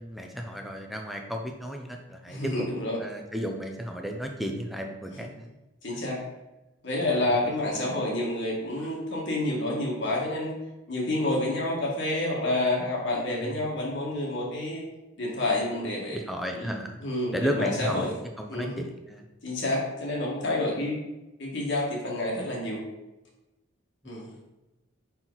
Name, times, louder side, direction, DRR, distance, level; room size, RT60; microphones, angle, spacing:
voice 1, 0.0-2.5 3.0-5.5 13.4-13.7 16.1-17.0 17.3-18.1 18.4-19.2 24.0-24.1, equal, ahead, 2 dB, 0.5 m, -33 dB
voice 2, 2.3-3.0 5.8-6.2 6.8-10.5 10.9-14.8 15.2-16.2 16.5-16.7 17.0-18.1 18.5-18.8 19.4-21.0 21.4-22.8 24.0-24.3, left 1 dB, 55° left, -3 dB, 1.7 m, -28 dB
5.8 x 4.4 x 3.9 m, 1.0 s
head